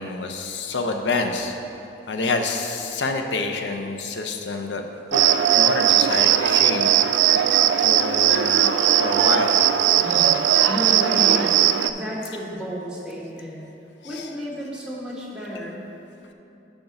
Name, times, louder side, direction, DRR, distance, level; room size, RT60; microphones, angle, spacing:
voice 1, 0.0-1.6 2.1-4.8 5.1-6.9 7.8-9.5 14.0-14.3, left 3 dB, 75° left, 4 dB, 0.5 m, -27 dB
Cricket, 5.1-11.9, right 10 dB, 90° right, 0.3 m, -18 dB
voice 2, 10.0-10.4 10.7-13.6 14.0-15.8, equal, 5° right, -6 dB, 1.2 m, -32 dB
7.0 x 5.1 x 5.1 m, 2.9 s
head